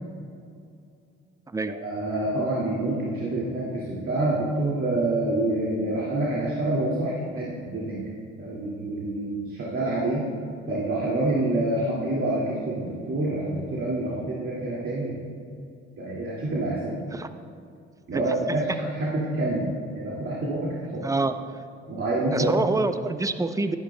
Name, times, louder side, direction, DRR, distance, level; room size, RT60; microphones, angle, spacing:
voice 1, 1.8-8.0 8.4-10.2 10.7-15.2 16.0-17.0 18.1-21.0 21.9-22.5, right 2 dB, 40° right, -7 dB, 2.2 m, -27 dB
voice 2, 18.1-18.5 21.0-21.4 22.3-23.8, right 3 dB, 10° right, 10 dB, 0.5 m, -26 dB
12.0 x 11.0 x 2.2 m, 2.4 s
hypercardioid pair, 55°, 32 cm